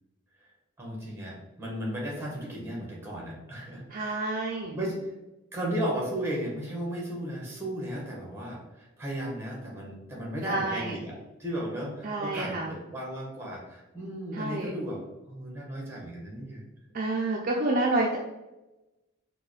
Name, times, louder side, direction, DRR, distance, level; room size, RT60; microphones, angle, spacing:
voice 1, 0.8-4.2 4.7-5.1 5.5-15.0 15.3-16.6, equal, 10° right, -3 dB, 1.0 m, -35 dB
voice 2, 3.9-4.7 10.5-10.9 12.0-12.7 14.3-14.7 16.9-18.2, right 2 dB, 40° right, -2 dB, 0.4 m, -28 dB
4.7 x 2.2 x 3.1 m, 1.0 s
head